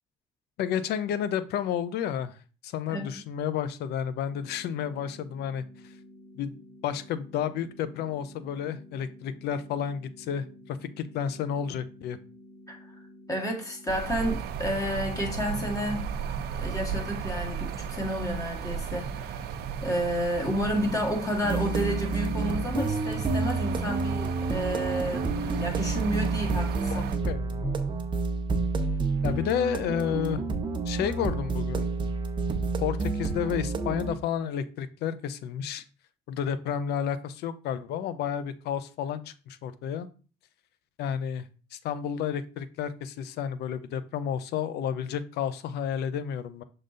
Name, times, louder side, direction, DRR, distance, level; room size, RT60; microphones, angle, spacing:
voice 1, 0.6-2.4 2.6-5.6 6.4-6.6 6.8-12.2 26.9-27.8 29.2-30.4 30.9-31.9 32.8-35.8 36.3-40.1 41.0-46.6, left 8 dB, 75° left, 14 dB, 0.6 m, -31 dB
sound 1, 4.3-14.3, left 1 dB, 35° left, 3.4 m, -51 dB
voice 2, 13.3-16.0 16.6-19.4 19.8-27.1, equal, 20° left, 1 dB, 1.9 m, -31 dB
sound 2, 13.9-27.2, right 7 dB, 70° right, 0.8 m, -35 dB
sound 3, 21.4-34.1, right 3 dB, 30° right, 0.9 m, -29 dB
6.5 x 3.9 x 3.9 m, 0.37 s
cardioid pair, 110°, 17 cm